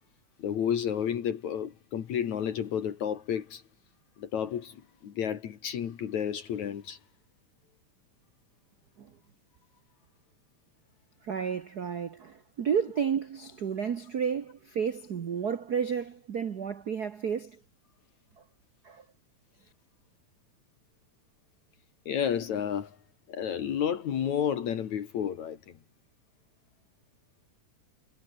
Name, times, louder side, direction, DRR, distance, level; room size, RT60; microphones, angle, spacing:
voice 1, 0.4-3.6 4.2-7.0 22.1-23.0 23.3-25.8, left 8 dB, 65° left, 3.1 m, -31 dB
voice 2, 11.2-17.6 18.8-19.0, right 7 dB, 85° right, 0.8 m, -31 dB
omnidirectional pair, 3.5 m